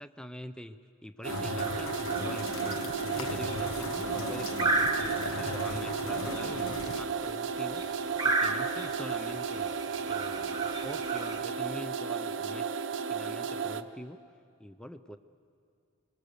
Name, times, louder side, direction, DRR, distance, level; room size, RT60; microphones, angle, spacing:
voice 1, 0.0-0.8 1.0-7.8 8.2-9.7 10.1-12.7 13.0-14.2 14.6-15.2, equal, 5° left, 10 dB, 0.5 m, -44 dB
sound 1, 1.2-13.8, right 6 dB, 65° right, 0.8 m, -34 dB
sound 2, 1.3-7.0, left 2 dB, 85° left, 1.1 m, -37 dB
sound 3, 1.6-11.4, right 2 dB, 20° right, 1.1 m, -35 dB
26.0 x 22.0 x 6.7 m, 2.4 s
head